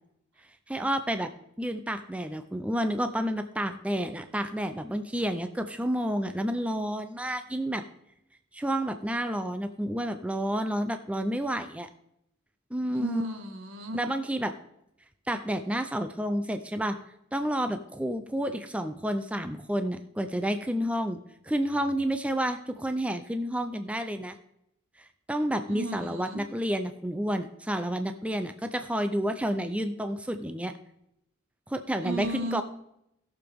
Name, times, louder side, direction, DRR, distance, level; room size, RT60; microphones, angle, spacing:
voice 1, 0.7-1.3 1.6-7.8 8.5-11.9 12.7-13.2 13.9-14.6 15.3-17.0 17.3-21.2 21.4-24.4 25.0-30.7 31.7-32.6, equal, 5° right, 8 dB, 0.5 m, -30 dB
voice 2, 12.9-14.0 25.7-26.4 32.0-32.6, right 1 dB, 80° right, 5 dB, 1.6 m, -34 dB
16.5 x 6.9 x 3.5 m, 0.79 s
head